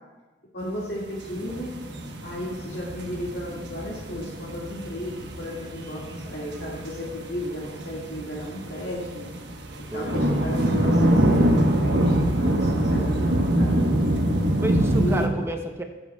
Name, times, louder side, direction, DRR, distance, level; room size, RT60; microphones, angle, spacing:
voice 1, 0.5-1.7 2.2-9.3 9.9-13.9 14.9-15.3, equal, 65° left, -5 dB, 2.0 m, -34 dB
sound 1, 1.0-15.3, right 1 dB, 65° right, 1.1 m, -25 dB
voice 2, 9.9-10.4 14.6-15.8, right 1 dB, 15° right, 4 dB, 0.7 m, -31 dB
21.0 x 7.9 x 2.3 m, 1.2 s
head